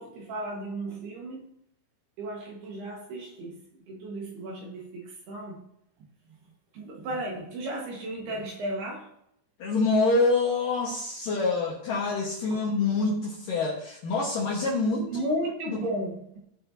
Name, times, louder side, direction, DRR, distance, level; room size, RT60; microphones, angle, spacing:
voice 1, 0.0-1.5 2.2-5.6 6.7-9.1 15.0-16.4, right 1 dB, 65° right, -1 dB, 3.1 m, -34 dB
voice 2, 9.6-15.2 15.7-15.8, left 3 dB, 65° left, -4 dB, 2.2 m, -26 dB
17.0 x 6.5 x 2.8 m, 0.74 s
omnidirectional pair, 5.8 m